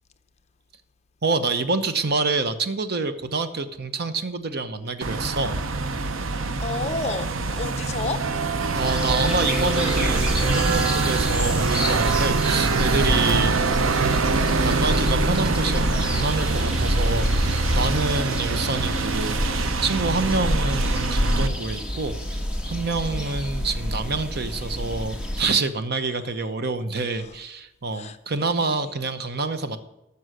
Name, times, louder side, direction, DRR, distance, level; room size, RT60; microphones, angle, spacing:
voice 1, 1.2-5.6 8.7-13.6 14.0-14.1 14.6-22.2 22.6-29.8, right 3 dB, 50° right, 0.9 m, -27 dB
sound 1, 5.0-21.5, right 3 dB, 85° right, 0.7 m, -24 dB
voice 2, 6.6-8.3 23.0-23.4 26.0-26.5 27.1-27.4 27.9-29.0, left 3 dB, 35° left, 0.7 m, -34 dB
sound 2, 8.8-25.4, equal, 5° right, 1.4 m, -28 dB
12.5 x 7.0 x 6.6 m
head